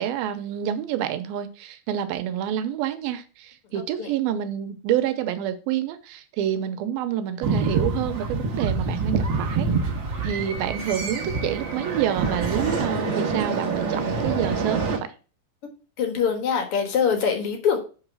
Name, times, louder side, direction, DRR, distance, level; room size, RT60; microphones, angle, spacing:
voice 1, 0.0-9.7 10.2-15.1, right 10 dB, 90° right, 10 dB, 2.5 m, -28 dB
voice 2, 3.7-4.1 16.0-17.8, left 7 dB, 55° left, 4 dB, 1.6 m, -24 dB
sound 1, 7.4-15.0, right 4 dB, 60° right, 1.2 m, -26 dB
7.4 x 3.9 x 6.0 m, 0.35 s
omnidirectional pair, 4.3 m